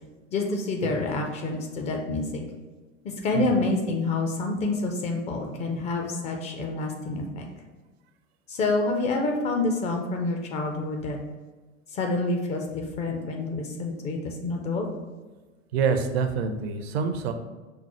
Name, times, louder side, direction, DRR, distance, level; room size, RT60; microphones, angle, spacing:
voice 1, 0.3-2.4 3.0-7.5 8.5-11.2 11.9-14.9, left 2 dB, 20° left, 2 dB, 0.4 m, -28 dB
voice 2, 15.7-17.3, right 5 dB, 55° right, 7 dB, 0.6 m, -26 dB
5.4 x 2.0 x 4.2 m, 1.3 s
figure-of-eight pair, 85°, 38 cm